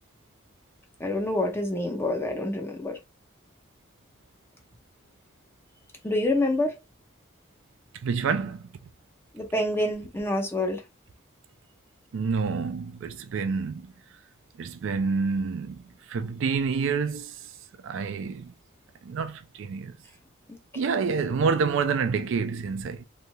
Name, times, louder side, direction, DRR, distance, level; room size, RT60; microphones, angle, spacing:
voice 1, 1.0-3.0 6.0-6.7 9.3-10.8, left 1 dB, 10° left, 0.7 m, -27 dB
voice 2, 8.0-8.7 12.1-13.9 14.6-17.3 17.8-18.5 19.0-19.9 20.8-23.0, right 5 dB, 65° right, 0.4 m, -28 dB
3.1 x 2.7 x 2.2 m
head